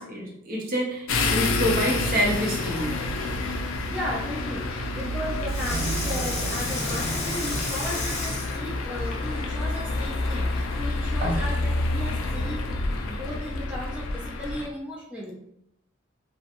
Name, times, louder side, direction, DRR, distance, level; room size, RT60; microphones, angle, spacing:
voice 1, 0.0-3.0 11.2-11.4, equal, 45° right, -1 dB, 0.6 m, -27 dB
sound 1, 1.1-14.7, left 2 dB, 90° left, 0.4 m, -28 dB
Water tap faucet / Sink (filling or washing), 2.5-3.2 5.4-9.4 10.0-10.1, left 2 dB, 35° left, 0.7 m, -32 dB
voice 2, 3.9-15.3, left 1 dB, 5° right, -5 dB, 0.3 m, -35 dB
2.4 x 2.1 x 2.8 m, 0.77 s
head